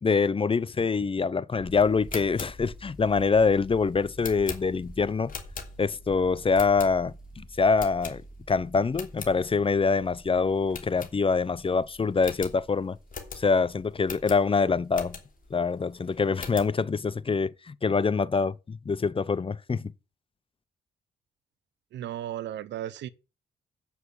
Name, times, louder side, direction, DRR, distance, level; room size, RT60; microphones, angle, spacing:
voice 1, 0.0-5.3 5.8-8.2 8.5-13.0 13.4-15.2 15.5-19.9, left 4 dB, 30° left, 0.7 m, -25 dB
sound 1, 1.6-17.5, equal, 5° right, 2.4 m, -49 dB
sound 2, 1.9-6.1 6.5-7.3 7.8-8.6 8.9-9.4 9.8-9.9 10.1-10.3 10.7-11.6 11.9-12.0 12.2-15.5 16.0-16.8, left 5 dB, 50° left, 3.1 m, -41 dB
voice 2, 21.9-23.1, right 12 dB, 85° right, 0.8 m, -35 dB
8.2 x 7.1 x 8.4 m
cardioid pair, 70°, 18 cm